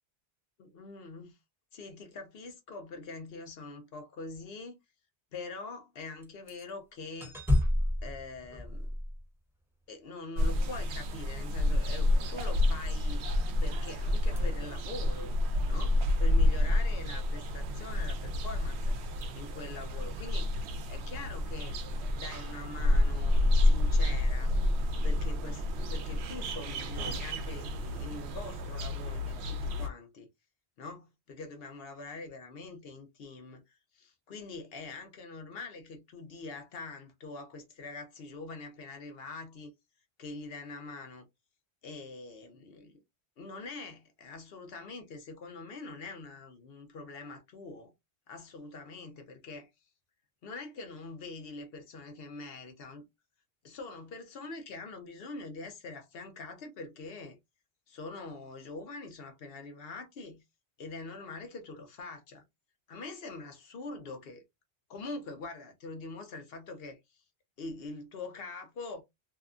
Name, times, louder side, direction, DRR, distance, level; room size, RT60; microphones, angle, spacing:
voice 1, 0.6-1.4 1.7-4.8 5.3-7.4 8.0-8.9 9.9-13.2 13.6-15.3 15.7-18.9 19.3-20.5 20.9-21.8 22.1-24.6 25.0-30.3 30.8-39.7 40.2-41.3 41.8-43.0 43.4-47.9 48.3-49.7 50.4-53.1 53.6-57.4 57.9-60.4 60.8-62.4 62.9-64.4 64.9-67.0 67.6-69.0, left 3 dB, 60° left, 0.9 m, -44 dB
sound 1, 6.2-6.7 7.2-9.6 12.4-12.7 13.6-13.9 14.2-14.4 19.2-19.3, left 1 dB, ahead, 0.8 m, -31 dB
sound 2, 10.4-29.9, left 1 dB, 75° right, 0.8 m, -29 dB
2.7 x 2.2 x 2.4 m
omnidirectional pair, 1.1 m